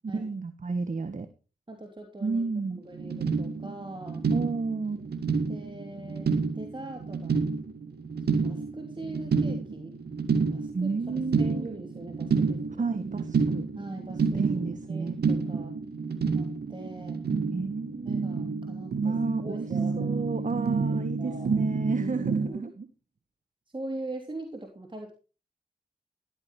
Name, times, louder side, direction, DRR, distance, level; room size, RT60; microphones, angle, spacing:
voice 1, 0.1-1.3 2.2-2.8 4.3-5.0 10.7-11.7 12.8-13.7 14.3-15.1 17.5-18.4 19.0-19.6 20.0-22.9, right 4 dB, 50° right, 11 dB, 1.4 m, -31 dB
voice 2, 1.7-2.4 2.7-4.2 5.5-7.4 8.4-9.9 10.5-12.7 13.8-15.8 16.3-17.2 18.0-19.1 19.4-20.2 20.6-21.7 22.0-22.6 23.7-25.1, right 2 dB, 30° right, 3 dB, 3.3 m, -41 dB
sound 1, 2.7-2.8 2.9-22.5, right 5 dB, 80° right, 2.1 m, -29 dB
14.0 x 13.0 x 3.3 m, 0.33 s
cardioid pair, 45°, 16 cm